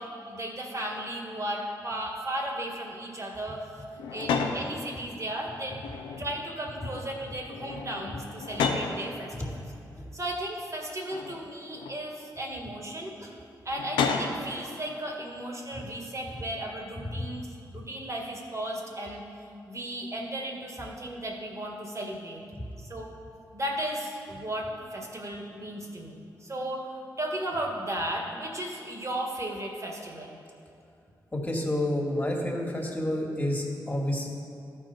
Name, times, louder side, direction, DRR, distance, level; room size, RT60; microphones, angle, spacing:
voice 1, 0.0-3.7 4.1-5.8 6.2-9.6 10.1-13.3 13.7-19.2 19.7-22.4 22.8-23.1 23.5-30.4, right 1 dB, 35° right, -1 dB, 1.9 m, -35 dB
sound 1, 4.0-4.7 5.7-6.4 6.8-7.1 7.5-9.0 9.8-9.9 11.1-12.0 13.7-14.5, left 5 dB, 90° left, 0.6 m, -31 dB
voice 2, 31.3-34.3, left 1 dB, 20° left, 0 dB, 2.2 m, -30 dB
13.5 x 4.6 x 4.4 m, 2.5 s
supercardioid pair, 40°, 8 cm